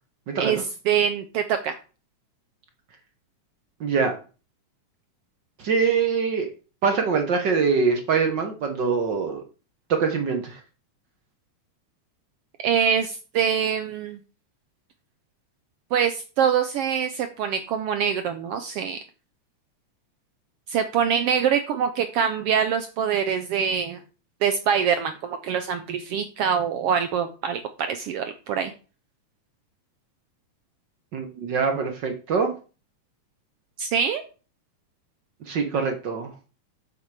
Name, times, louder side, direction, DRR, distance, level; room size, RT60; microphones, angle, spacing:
voice 1, 0.3-0.6 3.8-4.2 5.6-6.5 6.8-9.4 9.9-10.6 31.1-32.5 35.4-36.3, right 5 dB, 65° right, 5 dB, 1.1 m, -24 dB
voice 2, 0.9-1.8 12.6-14.2 15.9-19.0 20.7-24.0 24.4-27.6 27.9-28.7 33.8-34.2, right 7 dB, 80° right, 9 dB, 1.3 m, -24 dB
7.7 x 7.5 x 4.8 m, 0.35 s
omnidirectional pair, 3.5 m